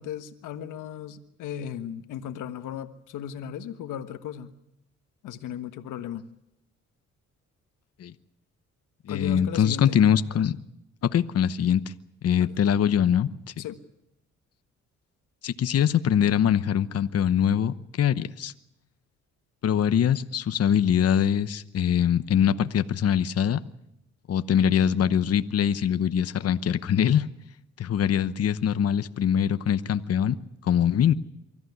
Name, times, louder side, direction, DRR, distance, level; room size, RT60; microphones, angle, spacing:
voice 1, 0.0-4.5 5.2-6.2 9.1-10.0 12.4-12.5 13.6-13.8, left 9 dB, 85° left, 9 dB, 1.5 m, -36 dB
voice 2, 9.1-10.6 11.0-11.8 12.2-13.3 15.4-18.5 19.6-23.6 24.3-27.3 27.8-30.4 30.6-31.1, left 9 dB, 55° left, 12 dB, 1.0 m, -23 dB
24.0 x 14.5 x 9.6 m, 0.84 s
cardioid pair, 90°, 30 cm